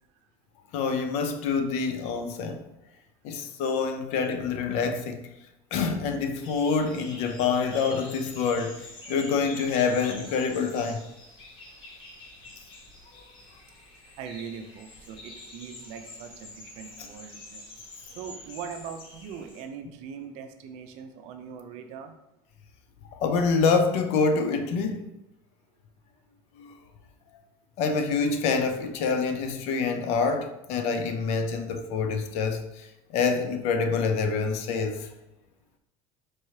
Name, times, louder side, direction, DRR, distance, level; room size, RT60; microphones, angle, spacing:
voice 1, 0.7-2.6 3.2-5.2 5.7-11.0 23.1-25.1 26.6-26.7 27.8-35.1, left 5 dB, 65° left, 7 dB, 0.6 m, -26 dB
sound 1, 6.3-19.6, left 2 dB, 45° left, 1.2 m, -46 dB
voice 2, 14.2-17.7 18.1-22.1, right 7 dB, 65° right, 7 dB, 0.5 m, -41 dB
4.5 x 3.1 x 2.8 m, 0.90 s
supercardioid pair, 115°, 12 cm